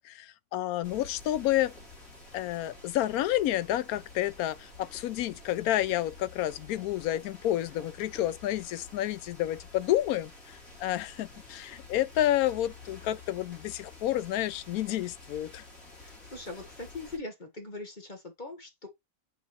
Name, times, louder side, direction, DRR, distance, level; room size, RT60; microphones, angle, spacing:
voice 1, 0.1-1.7 2.3-10.3 10.8-15.6, left 13 dB, 90° left, 1.1 m, -30 dB
sound 1, 0.8-17.2, left 3 dB, 70° left, 2.8 m, -50 dB
voice 2, 16.0-18.9, left 2 dB, 35° left, 1.5 m, -41 dB
7.7 x 5.1 x 2.9 m
omnidirectional pair, 1.5 m